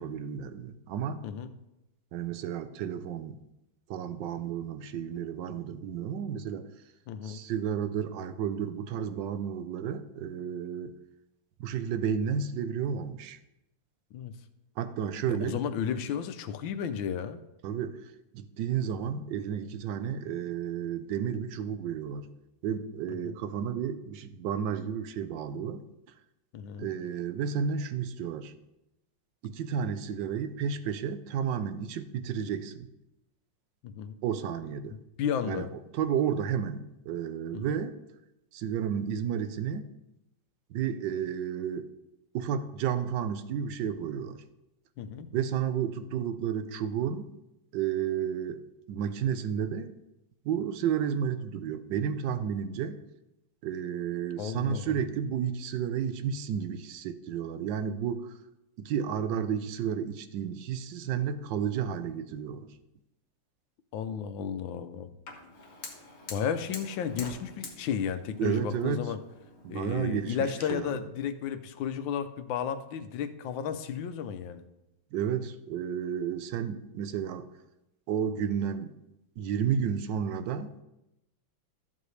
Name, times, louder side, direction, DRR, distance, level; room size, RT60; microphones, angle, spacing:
voice 1, 0.0-1.2 2.1-3.4 3.9-6.7 7.2-10.9 11.6-13.4 14.8-15.6 17.6-18.0 18.3-22.3 22.6-25.8 26.8-28.5 29.4-32.9 34.2-34.9 35.4-35.7 35.9-38.0 38.5-39.9 40.7-41.9 42.3-44.4 45.3-47.3 47.7-48.6 48.9-49.9 50.4-53.0 53.6-58.3 58.8-62.7 68.4-69.0 69.6-70.4 70.7-71.0 75.1-77.5 78.1-78.9 79.4-80.8, right 8 dB, 70° right, 11 dB, 1.2 m, -32 dB
voice 2, 7.1-7.4 14.1-14.4 15.3-17.4 23.1-23.4 26.5-26.9 33.8-34.2 34.9-35.7 37.5-37.8 45.0-45.3 54.4-55.0 63.9-65.1 66.3-69.2 69.7-74.6, left 8 dB, 70° left, 10 dB, 1.4 m, -33 dB
Fire, 65.3-70.7, left 3 dB, 35° left, 1.4 m, -47 dB
13.5 x 7.5 x 3.3 m, 0.90 s
omnidirectional pair, 2.3 m